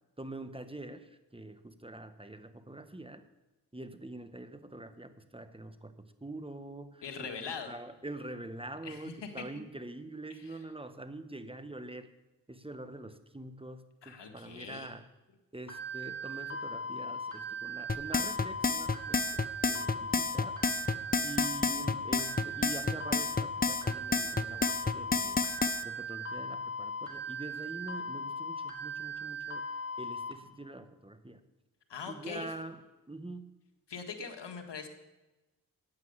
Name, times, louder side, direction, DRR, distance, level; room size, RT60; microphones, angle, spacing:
voice 1, 0.2-3.2 3.7-7.3 7.7-12.1 12.5-15.1 15.5-20.6 21.2-25.4 25.8-29.7 30.0-31.4 32.1-32.8 33.1-33.5, right 2 dB, 15° right, 10 dB, 1.3 m, -45 dB
voice 2, 7.0-7.7 8.8-9.7 10.3-10.6 14.0-14.9 31.9-32.5 33.9-34.9, left 5 dB, 80° left, 5 dB, 1.7 m, -42 dB
sound 1, 15.7-30.3, equal, 35° left, 4.3 m, -39 dB
sound 2, 17.9-25.8, left 4 dB, 20° left, 0.8 m, -30 dB
9.5 x 9.1 x 8.0 m, 1.1 s
cardioid pair, 40°, 42 cm